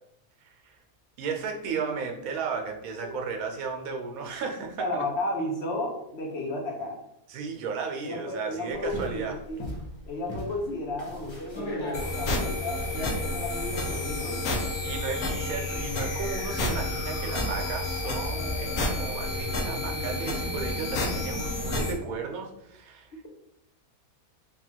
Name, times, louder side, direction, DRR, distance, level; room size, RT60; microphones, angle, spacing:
voice 1, 0.4-0.8 1.2-4.9 7.3-9.4 14.8-23.1, right 5 dB, 80° right, 3 dB, 1.1 m, -34 dB
voice 2, 4.8-7.0 8.0-9.6 10.1-14.6, left 1 dB, 60° left, 0 dB, 0.8 m, -33 dB
sound 1, 8.7-14.0, left 1 dB, 30° left, 0.5 m, -38 dB
sound 2, 11.9-21.9, left 2 dB, 85° left, 1.2 m, -30 dB
3.6 x 2.3 x 4.3 m, 0.82 s
omnidirectional pair, 1.5 m